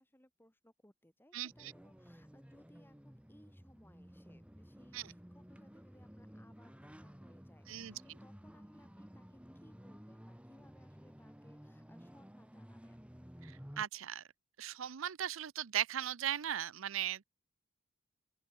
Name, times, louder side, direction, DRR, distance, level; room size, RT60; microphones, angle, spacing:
voice 1, 0.0-13.1, left 1 dB, 10° left, 5.6 m, -65 dB
voice 2, 1.3-1.7 4.9-5.0 7.7-8.0 13.4-14.2 14.6-17.2, right 10 dB, 80° right, 0.6 m, -38 dB
sound 1, 1.5-13.9, equal, 5° right, 1.4 m, -55 dB
open air
head